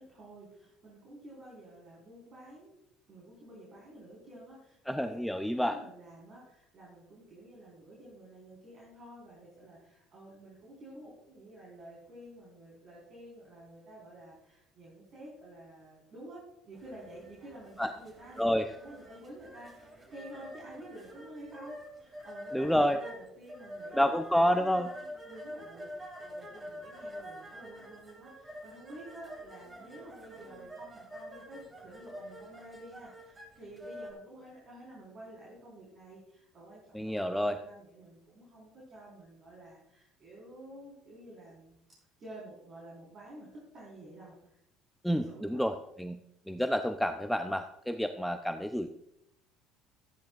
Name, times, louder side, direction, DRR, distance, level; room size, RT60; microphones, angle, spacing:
voice 1, 0.0-41.8 42.2-44.6 45.1-45.6, right 1 dB, 45° right, -6 dB, 4.7 m, -51 dB
voice 2, 4.9-5.8 17.8-17.9 18.4-18.7 22.5-23.0 23.9-24.9 36.9-37.6 45.0-46.2 46.5-48.9, equal, ahead, 7 dB, 0.6 m, -29 dB
sound 1, 16.7-34.1, equal, 20° right, 2.8 m, -47 dB
14.0 x 10.0 x 2.5 m, 0.79 s
hypercardioid pair, 70°, 0 cm